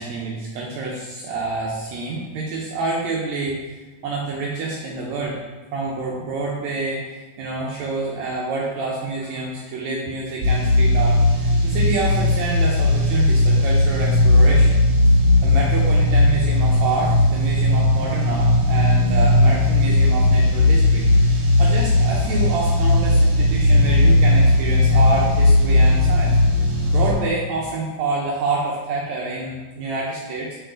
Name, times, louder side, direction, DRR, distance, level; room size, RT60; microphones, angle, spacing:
voice 1, 0.0-3.6 4.0-5.4 5.7-14.8 15.4-30.5, right 3 dB, 80° right, -3 dB, 1.6 m, -27 dB
sound 1, 10.4-27.1, left 1 dB, 60° right, 1.6 m, -17 dB
6.8 x 4.4 x 3.8 m, 1.3 s
omnidirectional pair, 4.0 m